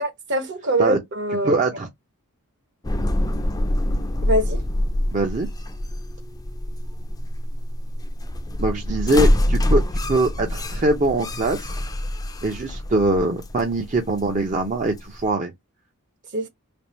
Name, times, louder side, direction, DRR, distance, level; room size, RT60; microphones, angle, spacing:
voice 1, 0.0-1.5 4.2-4.6 16.3-16.5, right 1 dB, 55° right, 1.1 m, -24 dB
voice 2, 1.4-1.9 5.1-5.5 8.6-11.7 12.4-15.5, right 2 dB, 35° right, 0.6 m, -22 dB
sound 1, 2.8-15.3, left 1 dB, 15° left, 0.4 m, -25 dB
3.5 x 2.5 x 4.1 m
head